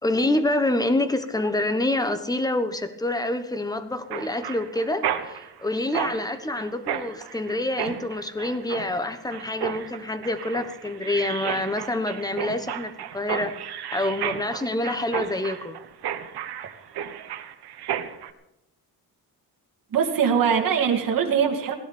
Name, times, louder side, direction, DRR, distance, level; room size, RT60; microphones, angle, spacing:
voice 1, 0.0-13.5 13.9-15.8, left 1 dB, 10° left, 10 dB, 1.2 m, -27 dB
Mechanisms, 4.1-18.3, right 10 dB, 80° right, 1.4 m, -33 dB
voice 2, 19.9-21.7, right 7 dB, 60° right, 2 dB, 2.4 m, -22 dB
18.5 x 17.0 x 4.4 m, 0.87 s
wide cardioid pair, 150°, 39 cm